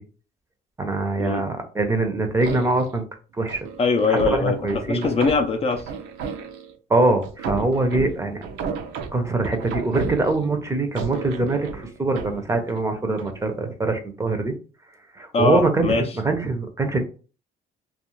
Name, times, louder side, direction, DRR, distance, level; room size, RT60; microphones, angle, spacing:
voice 1, 0.8-3.0 3.3-3.7 4.1-5.1 6.9-8.4 9.1-14.5 15.1-17.0, right 2 dB, 15° right, 0.6 m, -23 dB
sound 1, 2.4-3.0 3.5-6.7 7.2-10.6 11.0-12.8 13.2-13.4, right 6 dB, 80° right, 0.5 m, -33 dB
voice 2, 3.8-4.6 4.9-5.8 15.3-16.1, left 4 dB, 35° left, 0.4 m, -21 dB
2.4 x 2.4 x 3.0 m
cardioid pair, 110°, 17 cm